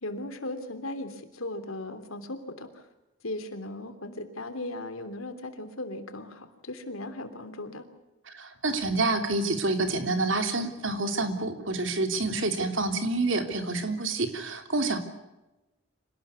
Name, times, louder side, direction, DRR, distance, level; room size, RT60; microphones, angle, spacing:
voice 1, 0.0-2.9 3.2-7.8, left 2 dB, 85° left, 9 dB, 3.2 m, -37 dB
voice 2, 8.3-15.0, right 2 dB, 65° right, 7 dB, 3.2 m, -28 dB
26.0 x 18.5 x 8.4 m, 1.0 s
head